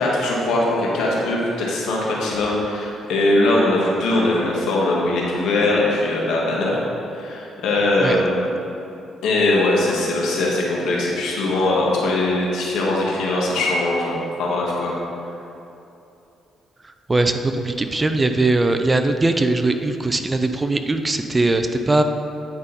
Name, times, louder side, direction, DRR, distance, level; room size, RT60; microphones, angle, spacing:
voice 1, 0.0-6.8 7.1-8.5 9.2-14.9, left 2 dB, 85° left, -3 dB, 1.7 m, -21 dB
voice 2, 17.1-22.0, right 2 dB, 20° right, 7 dB, 0.5 m, -20 dB
9.5 x 5.1 x 4.1 m, 2.8 s
cardioid pair, 90°, 0 cm